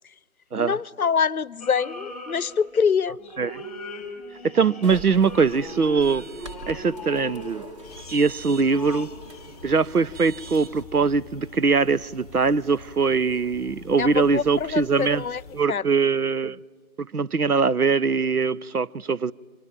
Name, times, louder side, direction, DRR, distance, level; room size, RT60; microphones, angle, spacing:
voice 1, 0.5-3.2 14.0-15.4 15.7-15.8, left 6 dB, 75° left, 0.7 m, -25 dB
sound 1, 1.6-2.9 3.2-7.8 8.5-9.1, left 2 dB, ahead, 1.8 m, -39 dB
voice 2, 4.4-6.2 6.7-7.6 8.1-9.1 9.6-15.2 15.5-16.6 17.0-19.3, right 5 dB, 90° right, 0.7 m, -22 dB
sound 2, 4.8-10.8, right 3 dB, 20° right, 1.7 m, -43 dB
sound 3, 7.8-15.7, left 5 dB, 25° left, 0.8 m, -46 dB
26.5 x 24.5 x 9.0 m
figure-of-eight pair, 145°, 43 cm